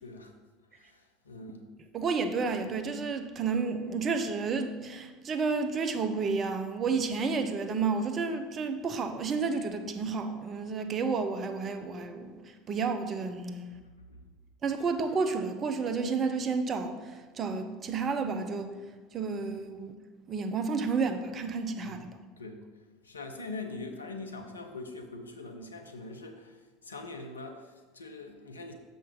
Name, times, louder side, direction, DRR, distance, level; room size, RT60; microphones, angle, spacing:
voice 1, 0.0-0.3 0.8-1.7 14.1-14.2 21.8-22.0 22.4-22.6 23.0-26.6 26.8-28.7, left 3 dB, 85° left, 0.8 m, -43 dB
voice 2, 1.9-13.7 14.6-17.0 17.4-18.7 19.1-19.9 20.3-22.1, right 4 dB, 35° right, 0.8 m, -31 dB
6.9 x 5.3 x 5.1 m
figure-of-eight pair, 75°, 0 cm